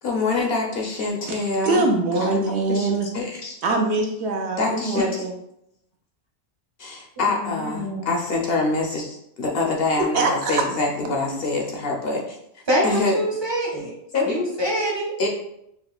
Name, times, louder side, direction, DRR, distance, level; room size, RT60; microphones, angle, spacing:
voice 1, 0.0-1.9 2.2-3.5 4.6-5.2 6.8-13.2 14.1-14.4 15.2-15.3, left 3 dB, 60° left, 0 dB, 0.7 m, -25 dB
voice 2, 1.2-3.1 3.6-5.3 10.1-10.6 11.0-11.4, right 3 dB, 70° right, 2 dB, 0.8 m, -23 dB
voice 3, 7.2-8.1 12.7-13.9 14.2-15.1, equal, 25° right, -3 dB, 0.7 m, -25 dB
5.8 x 2.1 x 2.3 m, 0.77 s
omnidirectional pair, 1.2 m